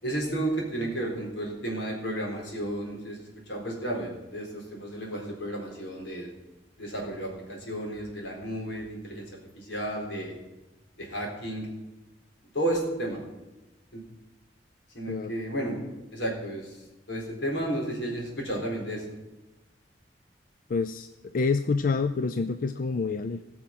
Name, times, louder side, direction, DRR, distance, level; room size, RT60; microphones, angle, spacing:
voice 1, 0.0-3.2 3.5-6.3 6.8-9.2 9.6-10.4 11.0-11.7 12.5-13.2 13.9-14.0 14.9-15.8 16.1-16.7 17.1-19.0, right 1 dB, 85° left, -1 dB, 4.2 m, -32 dB
voice 2, 20.7-21.1 21.3-23.4, left 4 dB, 50° left, 10 dB, 0.5 m, -27 dB
18.5 x 6.2 x 6.0 m, 1.0 s
head